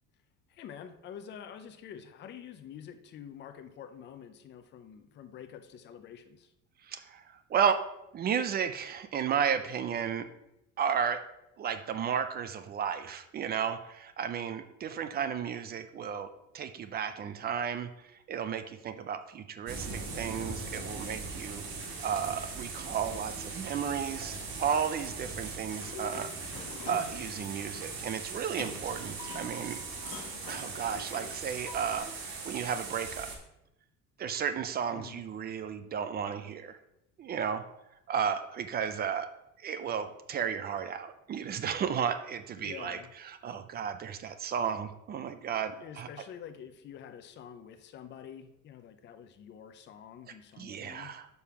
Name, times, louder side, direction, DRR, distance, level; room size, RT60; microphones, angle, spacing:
voice 1, 0.5-6.5 34.9-35.2 42.6-43.1 45.8-51.1, left 8 dB, 35° left, 8 dB, 0.6 m, -47 dB
voice 2, 6.9-7.2 7.5-7.9 8.1-10.3 10.8-11.2 11.6-16.3 16.5-17.9 18.3-21.6 22.0-26.3 26.9-29.8 30.5-32.1 32.5-33.3 34.2-36.8 37.2-37.6 38.1-39.3 39.6-43.0 43.2-46.1 50.6-51.3, right 7 dB, 30° right, 10 dB, 0.5 m, -33 dB
sound 1, 19.7-33.4, right 4 dB, 70° right, 2.1 m, -40 dB
Sliding door, 25.5-32.0, left 5 dB, 70° left, 1.4 m, -47 dB
6.4 x 5.4 x 5.7 m, 0.86 s
cardioid pair, 170°, 31 cm